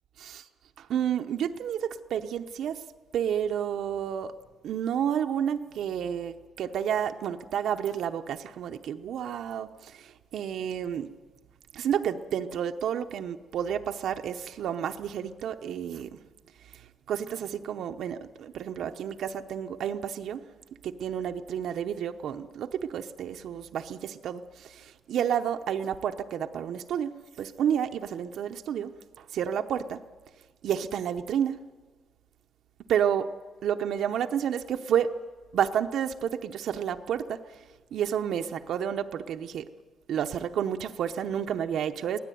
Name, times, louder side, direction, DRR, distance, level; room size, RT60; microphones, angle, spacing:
voice 1, 0.8-2.8 3.1-4.4 4.6-11.2 11.7-16.2 16.6-20.5 20.8-30.0 30.6-31.6 32.9-33.4 33.6-35.2 35.5-39.7 40.1-42.2, right 9 dB, 65° right, 0.8 m, -30 dB
23.5 x 17.0 x 9.3 m
cardioid pair, 165°, 0 cm